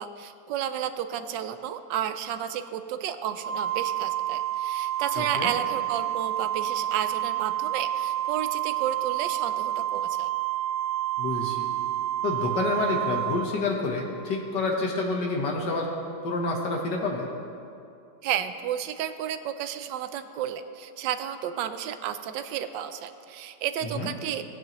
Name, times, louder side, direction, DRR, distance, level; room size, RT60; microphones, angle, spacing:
voice 1, 0.0-10.3 18.2-24.4, right 10 dB, 85° right, 10 dB, 1.3 m, -32 dB
Organ, 3.4-14.2, right 13 dB, 65° right, 0.8 m, -29 dB
voice 2, 5.2-5.5 11.2-11.6 12.2-15.9 16.2-17.3 24.0-24.1, left 3 dB, 75° left, 0 dB, 1.7 m, -28 dB
17.5 x 9.2 x 3.0 m, 2.5 s
omnidirectional pair, 1.9 m